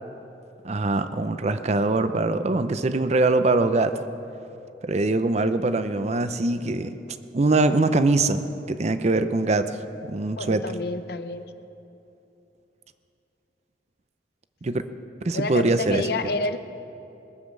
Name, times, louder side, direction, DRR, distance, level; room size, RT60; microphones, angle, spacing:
voice 1, 0.6-4.0 4.8-7.0 7.3-10.6 14.6-14.8 15.2-16.1, right 2 dB, 40° right, 11 dB, 0.6 m, -23 dB
voice 2, 10.4-11.4 15.3-16.6, left 3 dB, 60° left, 9 dB, 0.7 m, -29 dB
21.0 x 7.4 x 7.3 m, 2.8 s
head